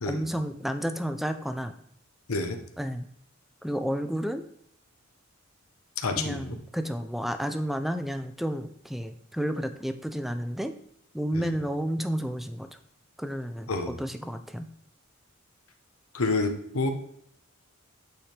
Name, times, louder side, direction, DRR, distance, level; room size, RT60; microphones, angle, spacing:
voice 1, 0.1-1.7 2.8-3.0 3.6-4.4 6.2-10.7 11.1-12.7 13.2-14.7, equal, ahead, 9 dB, 0.4 m, -31 dB
voice 2, 6.0-6.6 11.4-11.5 13.7-13.9 16.1-16.9, left 3 dB, 85° left, 6 dB, 0.9 m, -28 dB
8.6 x 4.3 x 3.4 m, 0.70 s
head